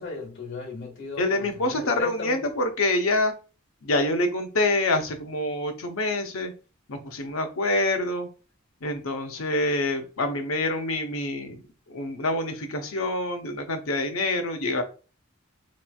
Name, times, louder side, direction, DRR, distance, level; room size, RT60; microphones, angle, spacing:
voice 1, 0.0-2.4, left 3 dB, 55° left, 1.5 m, -36 dB
voice 2, 1.2-3.3 3.8-6.5 6.9-8.3 8.8-11.6 11.9-14.8, left 2 dB, 85° left, 0.8 m, -26 dB
4.1 x 3.1 x 2.3 m
head